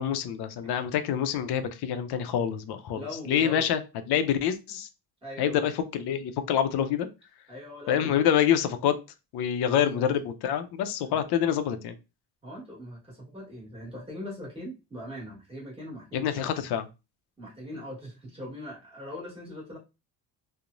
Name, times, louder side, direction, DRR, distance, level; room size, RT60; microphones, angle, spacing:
voice 1, 0.0-3.8 4.1-4.9 5.4-7.1 7.9-8.9 9.3-11.9 16.1-16.8, left 9 dB, 65° left, 0.5 m, -26 dB
voice 2, 2.9-3.7 5.2-5.7 7.5-8.3 9.6-10.0 11.0-11.2 12.4-16.5 17.4-19.8, left 1 dB, 15° right, 1.4 m, -41 dB
2.9 x 2.1 x 2.5 m
cardioid pair, 125°, 42 cm